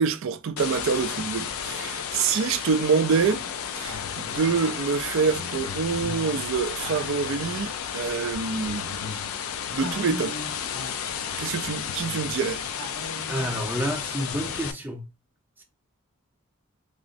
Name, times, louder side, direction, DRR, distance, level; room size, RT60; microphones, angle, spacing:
voice 1, 0.0-3.4 3.8-9.1 9.7-10.3 11.4-12.6, right 5 dB, 65° right, 0.4 m, -26 dB
sound 1, 0.6-14.7, left 8 dB, 80° left, 0.4 m, -33 dB
sound 2, 3.2-3.4 3.8-4.7 5.2-7.9 8.2-13.8 14.2-14.7, left 2 dB, 60° left, 1.1 m, -41 dB
voice 2, 13.3-15.1 15.6-15.7, equal, 10° right, 0.6 m, -29 dB
3.6 x 2.0 x 2.4 m
head